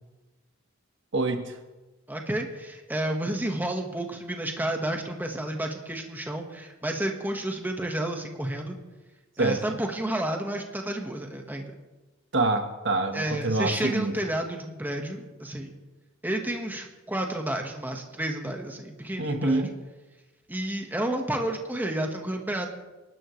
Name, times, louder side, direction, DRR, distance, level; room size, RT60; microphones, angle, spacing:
voice 1, 1.1-1.5 9.4-9.6 12.3-14.1 19.2-19.7, right 2 dB, 60° right, 6 dB, 1.3 m, -26 dB
voice 2, 2.1-8.8 9.4-11.7 13.1-15.8 16.2-19.7 20.5-22.7, right 1 dB, 10° right, 3 dB, 1.4 m, -31 dB
26.0 x 12.0 x 3.2 m, 1.1 s
head